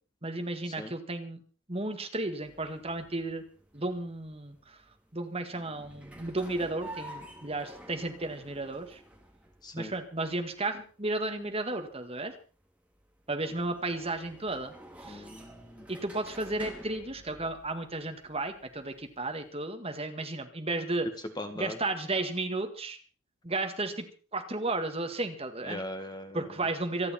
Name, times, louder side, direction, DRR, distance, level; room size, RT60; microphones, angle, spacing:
voice 1, 0.2-1.4 1.7-3.4 3.7-4.8 5.1-9.0 9.7-12.3 13.3-14.7 15.0-15.3 15.9-21.1 21.5-23.0 23.4-24.1 24.3-25.8 26.3-27.1, right 2 dB, 25° right, 6 dB, 1.8 m, -33 dB
sound 1, 2.4-19.5, right 1 dB, 5° right, 2.4 m, -51 dB
voice 2, 15.1-15.9 21.4-21.8 25.7-26.4, left 1 dB, 20° left, 7 dB, 1.6 m, -40 dB
26.5 x 10.0 x 4.3 m, 0.38 s
head